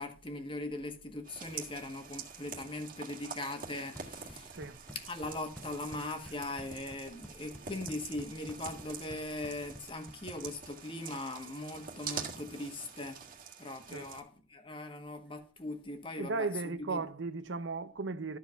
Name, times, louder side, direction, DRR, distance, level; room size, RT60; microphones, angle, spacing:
voice 1, 0.0-4.5 5.1-13.2 13.6-17.0, left 2 dB, 30° left, 1.4 m, -40 dB
sound 1, 1.2-14.2, right 6 dB, 45° right, 1.8 m, -46 dB
sound 2, 3.7-10.7, equal, 5° left, 0.9 m, -52 dB
voice 2, 16.2-18.4, right 3 dB, 80° right, 0.7 m, -36 dB
13.0 x 4.6 x 5.7 m
head